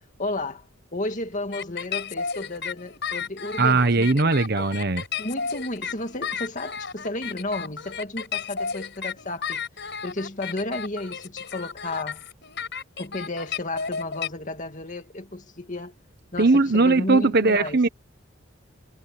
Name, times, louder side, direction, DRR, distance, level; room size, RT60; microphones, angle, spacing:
voice 1, 0.2-0.7 0.9-4.7 5.2-12.2 13.0-15.9 16.3-17.8, left 2 dB, 40° left, 2.3 m, -33 dB
sound 1, 1.5-14.3, left 6 dB, 55° left, 7.3 m, -33 dB
voice 2, 3.6-5.0 16.4-17.9, right 3 dB, 50° right, 1.1 m, -19 dB
head